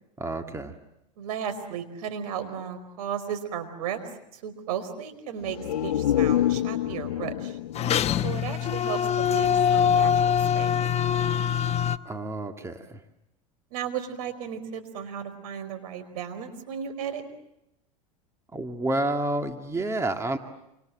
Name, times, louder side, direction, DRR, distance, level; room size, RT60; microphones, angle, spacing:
voice 1, 0.2-0.7 12.1-12.9 18.5-20.4, right 2 dB, 15° right, 6 dB, 2.1 m, -29 dB
voice 2, 1.2-4.0 4.3-7.6 8.2-10.7 13.7-17.2, right 8 dB, 75° right, 9 dB, 4.8 m, -35 dB
sound 1, 5.4-9.1 9.5-9.6, left 11 dB, 90° left, 0.9 m, -28 dB
sound 2, 7.8-12.0, left 8 dB, 35° left, 1.0 m, -23 dB
28.0 x 26.5 x 7.6 m, 0.84 s
hypercardioid pair, 100°, 19 cm